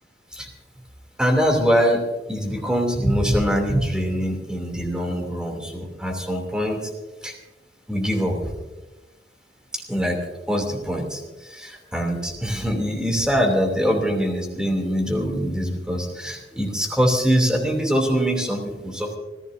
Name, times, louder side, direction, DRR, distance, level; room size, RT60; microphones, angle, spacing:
voice 1, 1.2-2.0 2.3-6.8 7.2-7.3 7.9-8.5 9.9-10.2 10.5-19.2, equal, 5° right, 2 dB, 2.8 m, -23 dB
26.0 x 15.5 x 2.7 m, 1.2 s
head